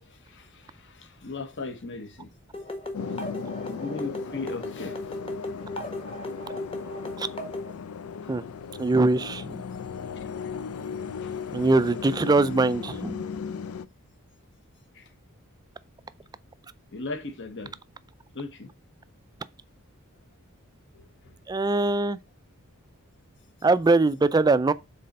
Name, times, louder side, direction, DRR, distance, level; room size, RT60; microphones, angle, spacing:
voice 1, 0.0-2.3 3.1-3.3 3.7-5.0 8.2-8.3 10.2-10.5 11.2-11.4 14.9-15.1 16.9-17.7 18.3-18.7 20.9-21.3, left 3 dB, 55° left, 1.2 m, -38 dB
sound 1, 2.5-7.7, left 1 dB, 25° left, 1.4 m, -36 dB
sound 2, 2.9-13.9, left 6 dB, 70° left, 0.4 m, -37 dB
voice 2, 8.8-9.5 11.5-13.2 21.5-22.2 23.6-24.7, right 3 dB, 20° right, 0.3 m, -22 dB
6.5 x 4.2 x 5.2 m
head